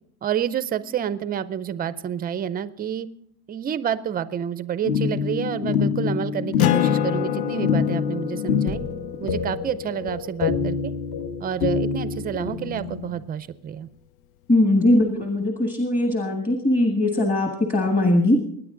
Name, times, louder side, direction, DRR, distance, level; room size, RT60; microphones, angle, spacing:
voice 1, 0.2-3.1 3.5-8.8 9.2-10.9 11.4-13.9, right 9 dB, 20° right, 15 dB, 0.4 m, -29 dB
sound 1, 4.8-13.1, left 6 dB, 55° left, 1.5 m, -26 dB
Acoustic guitar, 6.6-11.6, left 13 dB, 85° left, 0.7 m, -29 dB
voice 2, 14.5-18.4, left 1 dB, 20° left, 3 dB, 1.5 m, -20 dB
21.5 x 9.9 x 3.7 m, 0.69 s
cardioid pair, 155°, 44 cm